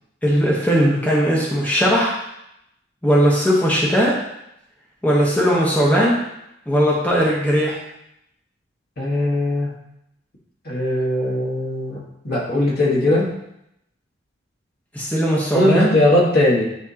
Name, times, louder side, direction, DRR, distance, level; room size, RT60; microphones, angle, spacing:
voice 1, 0.2-2.1 3.0-4.2 5.0-6.2 6.7-7.8 14.9-15.9, equal, 10° left, -5 dB, 1.1 m, -18 dB
voice 2, 9.0-9.7 10.6-13.3 15.5-16.6, left 1 dB, 55° left, -4 dB, 1.5 m, -19 dB
9.7 x 3.5 x 2.9 m, 0.81 s
head